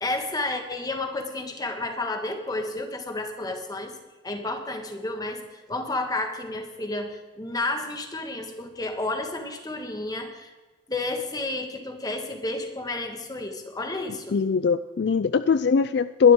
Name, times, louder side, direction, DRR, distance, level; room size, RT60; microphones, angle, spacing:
voice 1, 0.0-3.9 4.2-10.5 10.9-14.3, left 2 dB, 20° left, 5 dB, 1.6 m, -31 dB
voice 2, 14.3-16.3, left 6 dB, 55° left, 14 dB, 0.4 m, -20 dB
21.0 x 12.0 x 3.7 m, 1.3 s
head